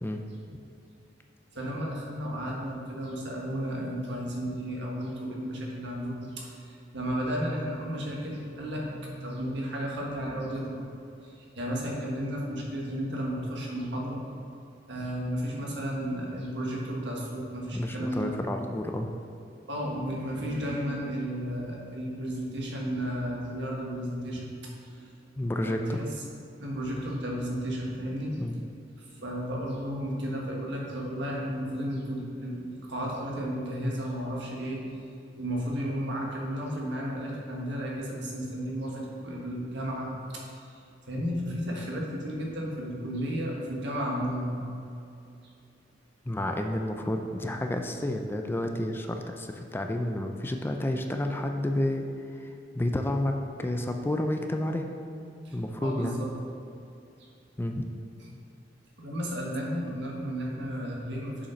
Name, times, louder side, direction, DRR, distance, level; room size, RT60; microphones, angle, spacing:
voice 1, 1.5-10.8 11.2-14.2 14.9-18.3 19.7-24.5 24.9-25.1 25.6-26.1 26.6-28.4 29.2-34.8 35.4-40.5 41.1-44.6 55.4-55.6 55.8-56.3 57.2-57.3 59.0-61.5, equal, 70° right, -2 dB, 1.6 m, -33 dB
voice 2, 17.7-19.1 25.4-26.0 28.4-28.7 46.3-52.1 52.3-54.9 55.5-56.2 57.6-57.9, left 1 dB, 10° left, 4 dB, 0.4 m, -30 dB
7.0 x 5.3 x 5.2 m, 2.6 s
head